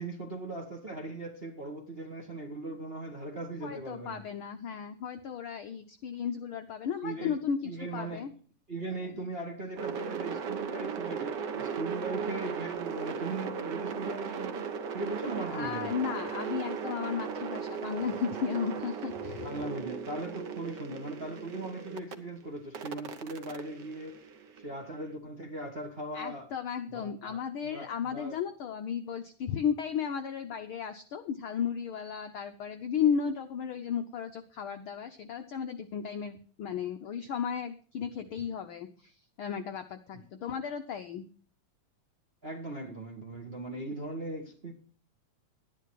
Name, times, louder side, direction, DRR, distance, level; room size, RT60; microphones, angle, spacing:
voice 1, 0.0-4.2 7.0-7.4 7.6-8.3 8.7-15.9 19.4-24.2 24.6-26.5 26.9-28.4 40.1-40.2 42.4-44.7, right 2 dB, 35° right, 1.0 m, -39 dB
voice 2, 3.6-8.3 15.5-19.6 26.1-39.1 39.4-41.3, left 7 dB, 85° left, 1.1 m, -34 dB
sound 1, 9.8-22.1 22.7-24.9, right 6 dB, 80° right, 0.9 m, -37 dB
11.5 x 10.5 x 4.6 m
omnidirectional pair, 3.4 m